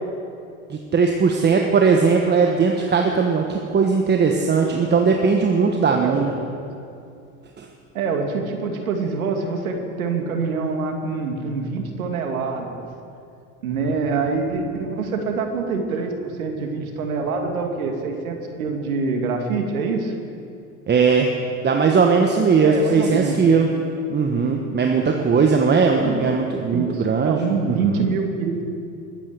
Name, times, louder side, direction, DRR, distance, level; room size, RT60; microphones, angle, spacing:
voice 1, 0.7-6.3 7.6-7.7 20.9-21.3 21.6-23.7 24.1-27.4 27.7-28.0, right 5 dB, 25° right, 2 dB, 1.3 m, -19 dB
voice 2, 5.9-6.3 7.9-12.7 13.6-20.1 22.6-23.4 25.8-26.2 26.7-28.6, right 4 dB, 80° right, 3 dB, 2.4 m, -25 dB
21.0 x 9.0 x 6.9 m, 2.5 s
hypercardioid pair, 85°, 42 cm